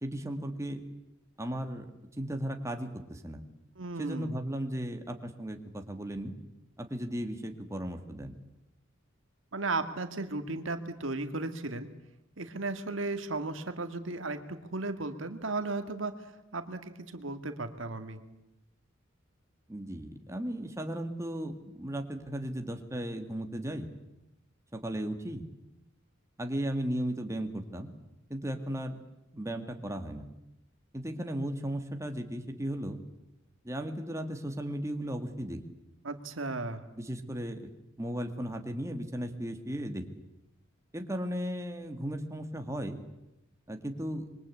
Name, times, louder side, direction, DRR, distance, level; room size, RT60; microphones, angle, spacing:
voice 1, 0.0-0.8 1.4-1.9 2.2-3.4 4.0-6.3 6.8-8.3 19.7-23.9 24.7-25.4 26.4-27.9 28.3-29.0 29.3-30.3 30.9-33.0 33.6-35.6 37.0-37.7 38.0-40.0 40.9-43.0 43.7-44.3, right 1 dB, 15° right, 5 dB, 1.9 m, -36 dB
voice 2, 3.8-4.4 9.5-11.9 12.4-16.1 16.5-18.2 36.0-36.8, right 3 dB, 65° right, 8 dB, 1.9 m, -35 dB
25.5 x 23.0 x 8.4 m, 0.92 s
head